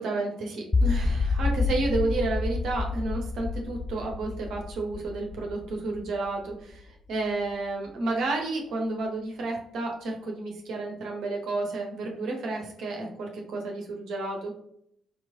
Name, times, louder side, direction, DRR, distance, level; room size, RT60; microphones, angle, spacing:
voice 1, 0.0-14.5, right 2 dB, 60° right, 1 dB, 0.8 m, -31 dB
sound 1, 0.7-6.8, left 3 dB, 30° left, 0.3 m, -29 dB
4.1 x 3.0 x 2.6 m, 0.71 s
figure-of-eight pair, 45°, 0 cm